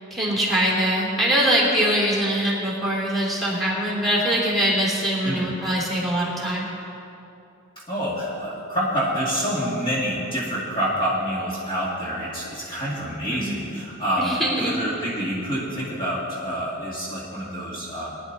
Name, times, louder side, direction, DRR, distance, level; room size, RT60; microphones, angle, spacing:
voice 1, 0.1-6.7 13.3-13.7 14.2-14.7, equal, ahead, -5 dB, 2.9 m, -23 dB
voice 2, 5.2-5.6 7.9-18.2, equal, 25° left, -7 dB, 2.3 m, -27 dB
21.0 x 10.5 x 4.0 m, 2.9 s
head